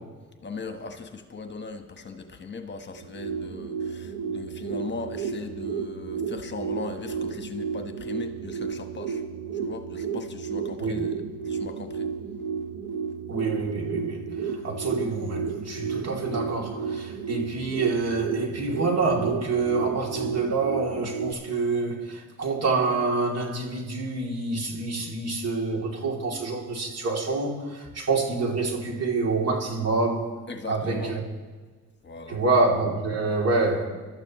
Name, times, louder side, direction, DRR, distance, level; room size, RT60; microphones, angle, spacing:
voice 1, 0.4-9.2 9.5-11.1 11.4-12.1 30.5-31.1 32.0-32.4, left 4 dB, 35° left, 6 dB, 1.3 m, -38 dB
sound 1, 2.9-21.3, right 6 dB, 80° right, 1.0 m, -32 dB
voice 2, 13.3-30.3 30.7-31.2 32.3-33.9, right 3 dB, 55° right, 0 dB, 3.0 m, -27 dB
24.5 x 13.0 x 3.1 m, 1.4 s
cardioid pair, 90°, 30 cm